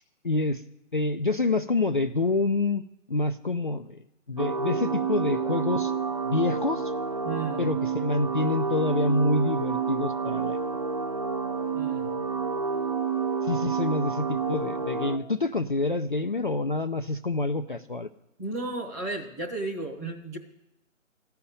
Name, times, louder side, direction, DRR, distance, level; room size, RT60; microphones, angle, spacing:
voice 1, 0.2-0.6 0.9-2.8 3.1-4.0 4.3-5.9 6.3-6.9 7.6-10.6 13.4-18.1, left 2 dB, 40° left, 5 dB, 0.4 m, -27 dB
sound 1, 4.4-15.2, right 5 dB, 30° right, 0.7 m, -29 dB
voice 2, 7.2-7.7 11.7-12.1 18.4-20.4, right 3 dB, 10° right, -1 dB, 1.1 m, -33 dB
14.5 x 5.7 x 9.5 m, 0.86 s
figure-of-eight pair, 155°, 40 cm